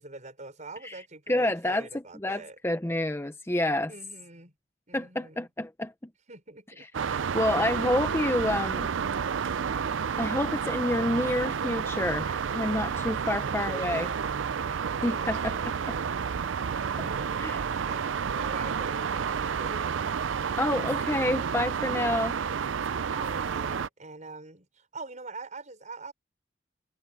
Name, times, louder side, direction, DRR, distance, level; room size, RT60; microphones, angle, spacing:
voice 1, 0.0-2.6 3.9-4.5 4.9-5.5 6.3-6.9 13.2-14.2 15.1-16.2 17.0-17.5 17.8-20.0 23.1-26.1, right 3 dB, 40° right, 6.2 m, -44 dB
voice 2, 1.3-1.9 2.2-3.9 4.9-5.9 7.3-8.9 9.6-9.7 10.2-14.1 15.0-16.0 17.0-17.1 17.4-17.6 20.6-22.4, left 1 dB, 15° left, 0.9 m, -28 dB
sound 1, 6.9-23.9, right 6 dB, 90° right, 0.5 m, -30 dB
head